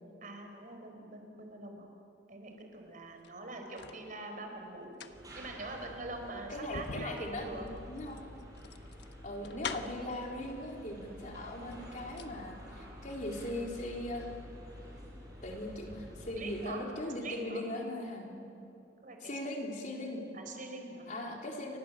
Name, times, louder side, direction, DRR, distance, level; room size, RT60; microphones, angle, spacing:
voice 1, 0.2-1.9 2.3-5.0 5.3-7.7 16.3-16.8 17.2-17.6 19.0-19.3 20.3-21.1, right 2 dB, 45° right, 4 dB, 4.9 m, -44 dB
sound 1, 3.1-4.0 4.8-10.1 11.1-11.2 11.6-12.4 12.7-12.8, left 5 dB, 70° left, 1.3 m, -45 dB
sound 2, 5.1-16.7, equal, 20° right, 7.2 m, -50 dB
voice 2, 6.3-8.2 9.2-14.3 15.4-18.4 19.2-20.2 21.1-21.8, left 1 dB, 45° left, 0 dB, 4.1 m, -39 dB
30.0 x 24.5 x 7.6 m, 2.7 s
head